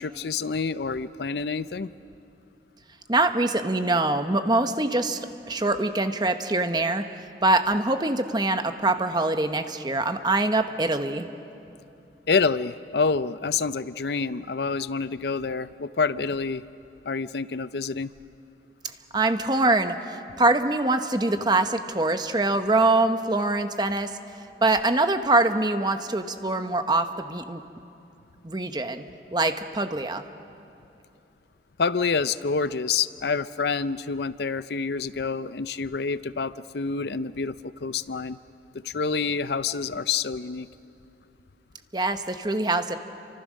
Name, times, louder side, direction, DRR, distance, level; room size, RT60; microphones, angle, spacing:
voice 1, 0.0-1.9 12.3-16.7 17.1-18.1 31.8-38.4 38.7-40.7, left 5 dB, 65° left, 15 dB, 0.5 m, -27 dB
voice 2, 3.1-7.0 7.4-11.2 19.1-24.1 24.6-27.6 28.4-29.0 29.3-30.2 41.9-43.0, right 2 dB, 25° right, 8 dB, 0.9 m, -24 dB
28.5 x 25.5 x 6.4 m, 2.7 s
head